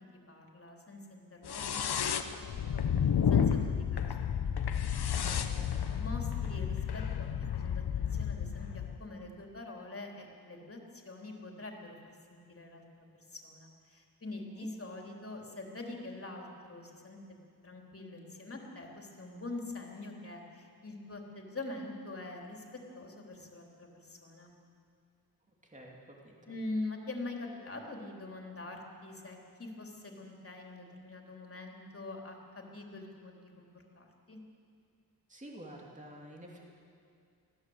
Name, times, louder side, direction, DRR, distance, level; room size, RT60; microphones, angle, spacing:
voice 1, 0.3-2.4 2.7-2.8 3.3-4.3 5.2-12.0 12.3-17.2 17.6-22.6 23.0-24.5 26.5-34.4, left 2 dB, 35° left, 0 dB, 3.5 m, -44 dB
sound 1, 1.4-9.0, left 8 dB, 80° left, 1.1 m, -31 dB
voice 2, 5.2-5.7 14.5-14.7 25.5-26.6 35.3-36.7, right 1 dB, 20° right, -2 dB, 2.9 m, -50 dB
23.5 x 16.0 x 8.0 m, 2.4 s
wide cardioid pair, 115°, 38 cm